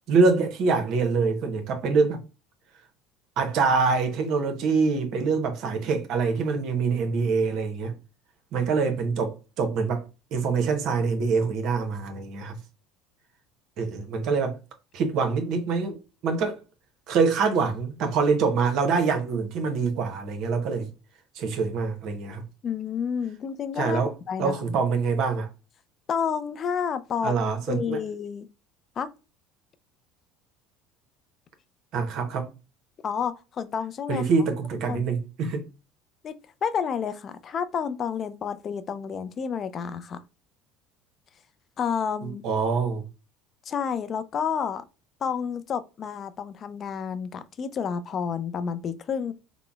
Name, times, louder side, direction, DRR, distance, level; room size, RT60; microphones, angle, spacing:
voice 1, 0.1-2.2 3.4-7.9 8.5-10.1 10.3-12.6 13.8-14.6 14.9-16.6 17.1-20.9 21.3-22.4 23.8-24.1 24.4-25.5 27.2-28.0 31.9-32.5 34.1-35.6 42.2-43.0, right 4 dB, 60° right, 0.7 m, -25 dB
voice 2, 22.6-24.8 26.1-27.3 27.7-28.5 29.0-29.1 33.0-34.2 34.9-35.1 36.2-36.3 36.6-40.2 41.8-42.4 43.7-44.8 45.2-49.3, left 7 dB, 40° left, 0.3 m, -30 dB
3.8 x 2.0 x 2.2 m
supercardioid pair, 90°, 0 cm